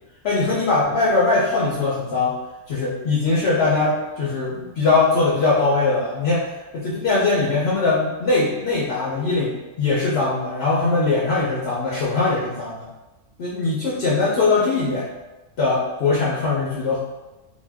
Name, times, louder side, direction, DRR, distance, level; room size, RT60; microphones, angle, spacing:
voice 1, 0.2-2.3 2.7-6.5 6.7-12.9 13.4-15.1 15.6-17.0, left 3 dB, 65° left, -4 dB, 0.7 m, -21 dB
2.6 x 2.1 x 3.3 m, 1.1 s
omnidirectional pair, 1.3 m